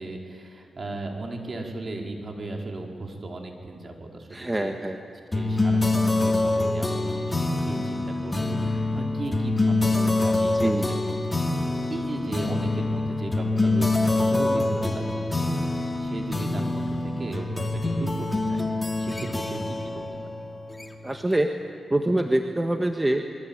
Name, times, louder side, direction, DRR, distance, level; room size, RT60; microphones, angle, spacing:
voice 1, 0.0-4.7 5.3-10.7 11.9-20.3, right 2 dB, 45° right, 1 dB, 4.7 m, -36 dB
voice 2, 4.3-5.0 10.5-10.9 21.0-21.5 21.9-23.2, right 1 dB, 15° right, 4 dB, 1.6 m, -25 dB
sound 1, 5.3-21.2, left 2 dB, 20° left, 2.5 m, -25 dB
27.0 x 22.5 x 9.0 m, 2.1 s
cardioid pair, 70°, 0 cm